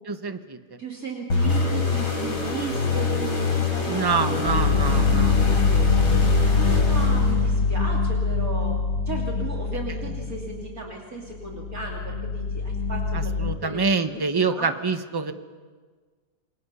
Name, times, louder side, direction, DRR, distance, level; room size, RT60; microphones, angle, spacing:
voice 1, 0.1-0.8 3.9-5.6 13.1-15.3, right 4 dB, 15° right, 8 dB, 0.9 m, -26 dB
voice 2, 0.8-4.6 6.5-8.8 9.1-13.4 13.6-14.0 14.5-14.7, right 3 dB, 50° right, -2 dB, 3.2 m, -35 dB
sound 1, 1.3-7.8, left 4 dB, 70° left, 5.0 m, -25 dB
sound 2, 4.4-10.8 11.3-13.5, left 4 dB, 85° left, 2.3 m, -23 dB
28.5 x 25.0 x 5.6 m, 1.5 s
omnidirectional pair, 1.9 m